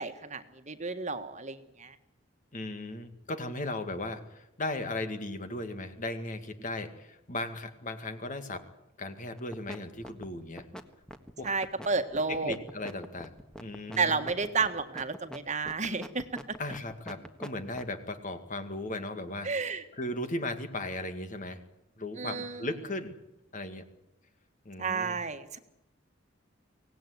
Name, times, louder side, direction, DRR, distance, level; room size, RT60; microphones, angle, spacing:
voice 1, 0.0-2.0 11.4-12.6 14.0-16.2 19.4-19.8 22.2-22.7 24.8-25.6, right 4 dB, 40° right, 8 dB, 1.7 m, -31 dB
voice 2, 2.5-8.7 9.0-10.7 11.4-11.5 12.3-13.4 13.6-14.3 16.6-19.5 19.9-21.6 22.0-23.2 23.5-23.8 24.7-25.2, left 2 dB, 40° left, 8 dB, 2.1 m, -37 dB
sound 1, 9.4-9.8 10.0-18.0, equal, 5° left, 1.5 m, -43 dB
24.5 x 18.0 x 9.7 m, 0.89 s
head